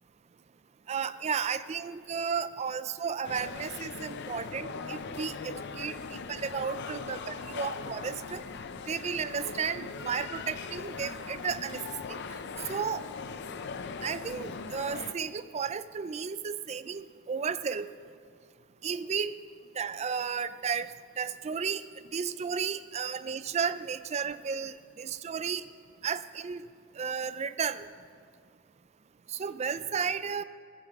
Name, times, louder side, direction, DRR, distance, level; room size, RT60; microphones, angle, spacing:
voice 1, 0.9-8.4 8.9-11.8 12.1-12.2 12.7-13.0 14.0-17.9 18.8-19.3 19.8-21.8 22.1-25.6 26.0-26.6 27.0-27.9 29.3-30.4, right 6 dB, 30° right, 14 dB, 0.4 m, -33 dB
sound 1, 3.2-15.1, left 4 dB, 55° left, 0.6 m, -40 dB
16.5 x 14.5 x 3.6 m, 2.1 s
head